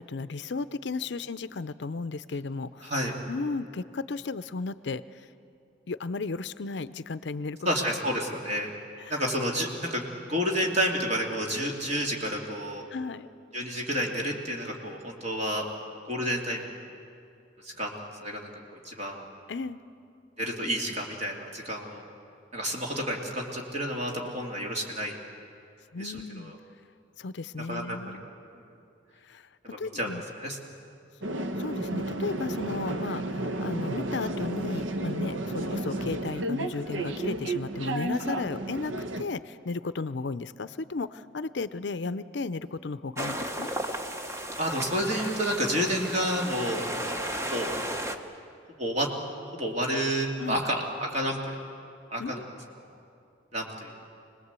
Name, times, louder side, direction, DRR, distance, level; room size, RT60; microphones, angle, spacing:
voice 1, 0.0-2.9 3.3-5.3 5.9-7.6 9.0-9.3 12.9-13.3 19.5-19.8 25.9-26.5 27.2-28.3 29.2-29.4 29.8-30.2 31.6-43.7 50.4-50.6 52.2-52.6, left 3 dB, 65° left, 14 dB, 0.5 m, -34 dB
voice 2, 2.8-3.1 7.6-8.7 9.1-12.9 13.5-15.7 16.0-16.7 17.6-18.5 18.8-19.2 20.4-22.0 22.5-25.2 26.0-26.6 27.7-28.0 29.6-30.6 38.3-38.4 44.6-46.8 47.4-47.7 48.8-49.1 49.5-51.6 52.1-52.4 53.5-53.9, equal, 35° right, 0 dB, 2.7 m, -30 dB
sound 1, 31.2-39.2, right 1 dB, 85° right, 1.0 m, -32 dB
sound 2, 43.2-48.2, right 1 dB, 15° right, 1.0 m, -34 dB
25.5 x 19.5 x 8.2 m, 2.5 s
head